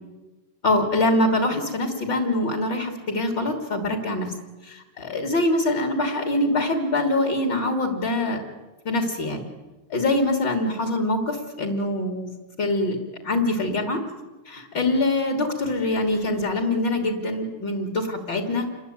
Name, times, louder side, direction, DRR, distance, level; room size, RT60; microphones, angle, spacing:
voice 1, 0.6-4.3 4.6-8.4 8.9-9.5 9.9-12.3 12.6-13.0 13.2-14.0 14.5-18.7, left 2 dB, 35° left, 4 dB, 3.6 m, -24 dB
29.0 x 22.0 x 9.4 m, 1.1 s
omnidirectional pair, 3.5 m